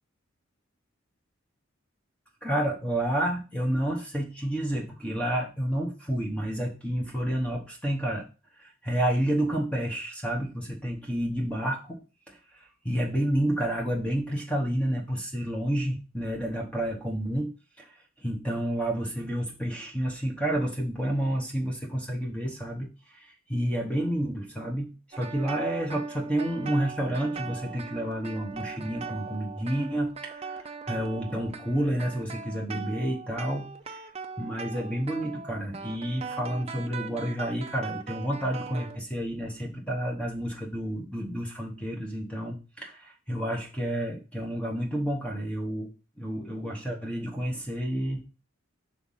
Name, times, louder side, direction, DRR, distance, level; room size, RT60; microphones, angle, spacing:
voice 1, 2.4-8.3 8.6-12.0 12.3-17.5 17.8-34.0 34.4-45.9 46.2-48.3, right 1 dB, 5° left, 0 dB, 1.0 m, -30 dB
sound 1, 25.1-39.0, right 5 dB, 30° right, 0.5 m, -40 dB
5.7 x 3.7 x 5.6 m, 0.34 s
head